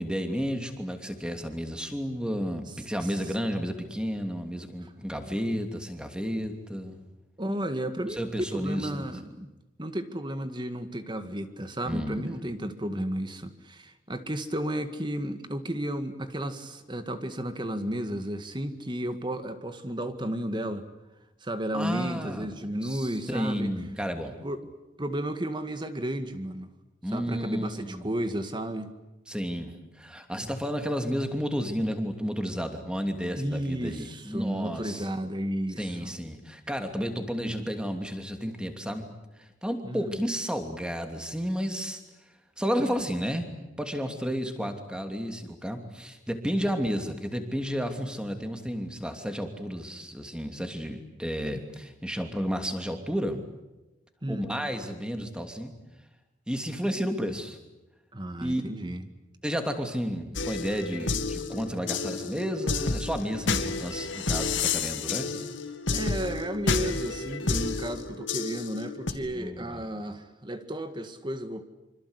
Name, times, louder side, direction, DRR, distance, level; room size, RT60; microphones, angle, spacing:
voice 1, 0.0-7.0 8.1-9.1 11.9-12.3 21.7-22.5 22.8-24.4 27.0-28.0 29.3-35.1 35.8-39.1 39.4-42.0 42.6-43.5 43.8-53.4 54.3-55.7 56.5-57.6 58.4-58.9 59.4-65.3 69.3-69.8, equal, 5° right, 6 dB, 2.9 m, -32 dB
voice 2, 7.4-9.5 9.8-20.9 21.4-23.7 24.4-24.6 25.0-26.7 27.1-28.9 33.3-36.1 39.8-40.2 42.8-43.1 54.2-54.5 58.1-59.1 65.9-71.6, right 1 dB, 25° right, 9 dB, 1.9 m, -33 dB
sound 1, 60.4-69.1, left 4 dB, 85° left, 2.3 m, -30 dB
26.5 x 26.0 x 8.3 m, 1.0 s
head